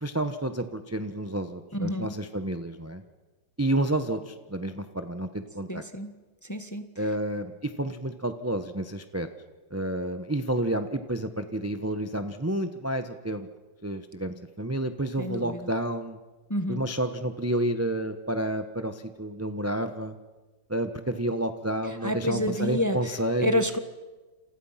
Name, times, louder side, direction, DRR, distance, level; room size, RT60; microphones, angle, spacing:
voice 1, 0.0-3.0 3.6-5.8 7.0-9.3 9.7-13.5 13.8-16.2 16.7-20.1 20.7-23.6, right 1 dB, 10° right, 8 dB, 0.8 m, -30 dB
voice 2, 1.7-2.1 5.7-6.1 6.4-6.8 15.2-15.7 16.5-16.8 22.0-23.0 23.4-23.8, left 1 dB, 10° left, 8 dB, 1.1 m, -28 dB
29.0 x 28.0 x 5.9 m, 1.2 s
omnidirectional pair, 2.1 m